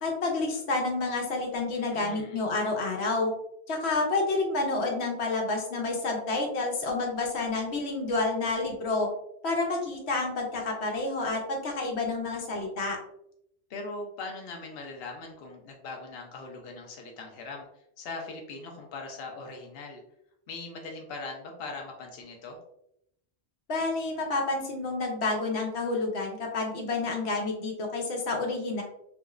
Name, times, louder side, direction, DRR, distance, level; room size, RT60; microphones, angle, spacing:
voice 1, 0.0-3.3 3.7-9.1 9.4-13.0 23.7-28.8, left 3 dB, 90° left, 0 dB, 1.1 m, -29 dB
voice 2, 1.7-2.4 13.7-17.7 18.0-20.0 20.5-22.6, left 3 dB, 70° left, 1 dB, 0.8 m, -40 dB
3.5 x 3.0 x 2.4 m, 0.77 s
omnidirectional pair, 1.1 m